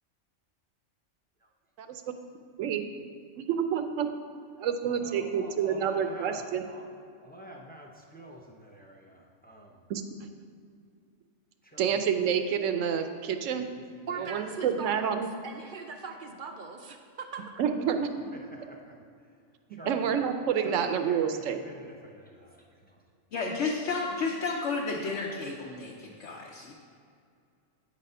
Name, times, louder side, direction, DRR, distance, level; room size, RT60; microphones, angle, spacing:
voice 1, 3.4-4.1 4.6-6.7 9.9-10.3 11.8-13.7 14.2-15.3 17.6-18.1 19.7-21.6, right 7 dB, 80° right, 8 dB, 0.9 m, -28 dB
voice 2, 4.8-6.8 7.2-9.7 11.7-12.0 13.5-13.6 14.1-14.3 18.3-18.9 19.8-20.2 20.6-22.6, right 1 dB, 15° left, -1 dB, 0.4 m, -47 dB
voice 3, 14.1-17.6, right 5 dB, 60° right, 5 dB, 0.5 m, -40 dB
voice 4, 23.3-26.7, left 4 dB, 70° left, -2 dB, 1.0 m, -32 dB
8.6 x 4.1 x 5.4 m, 2.4 s
omnidirectional pair, 1.3 m